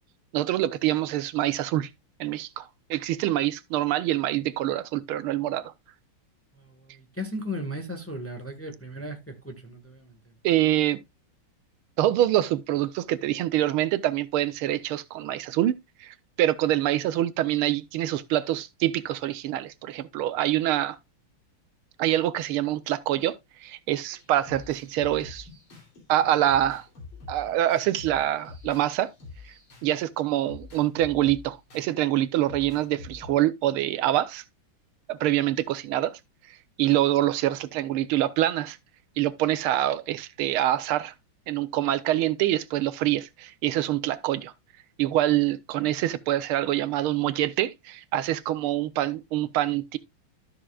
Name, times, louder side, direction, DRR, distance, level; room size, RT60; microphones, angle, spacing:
voice 1, 0.3-1.9 2.2-5.7 10.4-11.0 12.0-21.0 22.0-25.5 26.1-26.8 27.3-29.1 29.8-34.4 35.1-36.2 36.5-38.8 39.2-41.1 41.5-44.5 45.0-50.0, right 13 dB, 85° right, 1.6 m, -25 dB
voice 2, 6.7-10.1, left 1 dB, 10° left, 1.2 m, -36 dB
sound 1, 23.9-30.0 30.4-31.9 32.4-33.3, left 4 dB, 75° left, 4.0 m, -46 dB
12.5 x 6.7 x 2.4 m
omnidirectional pair, 2.3 m